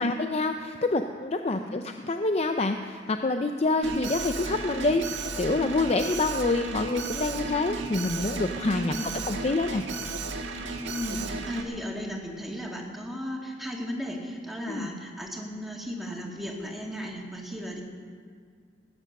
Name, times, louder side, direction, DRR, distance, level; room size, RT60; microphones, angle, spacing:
voice 1, 0.0-8.9 9.3-9.9 14.7-14.9, left 2 dB, 35° left, 6 dB, 0.5 m, -27 dB
Alarm, 3.8-11.6, right 3 dB, 90° right, 1.6 m, -34 dB
voice 2, 8.7-9.1 10.8-17.8, equal, ahead, -2 dB, 2.1 m, -35 dB
18.0 x 10.0 x 6.5 m, 2.2 s
head